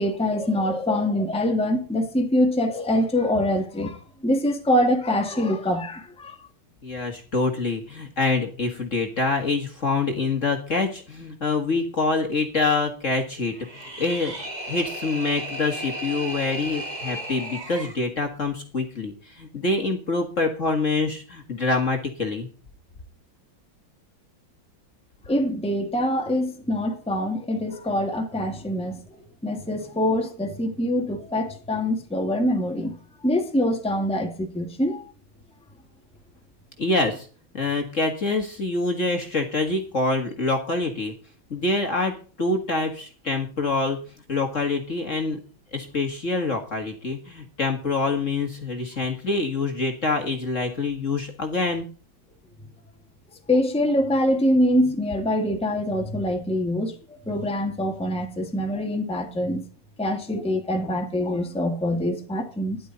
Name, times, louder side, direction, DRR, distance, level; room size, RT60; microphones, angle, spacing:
voice 1, 0.0-6.4 25.3-29.0 29.4-33.0 33.2-35.1 53.5-59.6 60.0-62.8, left 1 dB, 5° left, 1.7 m, -24 dB
voice 2, 6.8-13.5 14.0-14.3 14.7-22.5 36.8-37.3 37.5-41.1 41.5-44.0 44.3-45.4 45.7-51.9, left 3 dB, 35° left, 1.9 m, -25 dB
sound 1, 13.5-18.0, right 1 dB, 20° right, 2.0 m, -34 dB
13.0 x 11.5 x 4.0 m
omnidirectional pair, 2.3 m